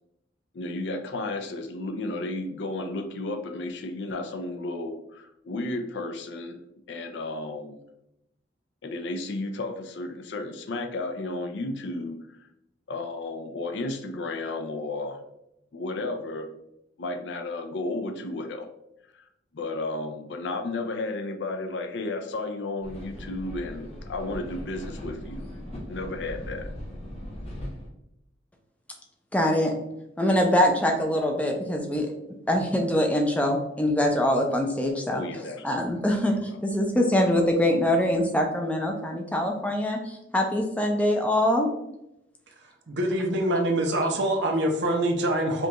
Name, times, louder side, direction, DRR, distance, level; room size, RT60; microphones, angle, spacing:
voice 1, 0.5-6.6 6.9-7.8 8.8-12.2 12.9-15.2 15.7-16.5 17.0-18.7 19.1-19.3 19.5-25.5 25.9-26.7 35.1-36.3, left 2 dB, 65° left, 5 dB, 0.5 m, -33 dB
sound 1, 22.8-27.9, equal, 35° left, 0.8 m, -39 dB
voice 2, 29.3-29.7 30.2-32.1 32.5-35.2 35.6-41.7, left 1 dB, 5° left, 2 dB, 0.4 m, -24 dB
voice 3, 42.9-45.7, right 1 dB, 60° right, 2 dB, 0.7 m, -25 dB
5.0 x 2.3 x 2.9 m, 0.84 s
head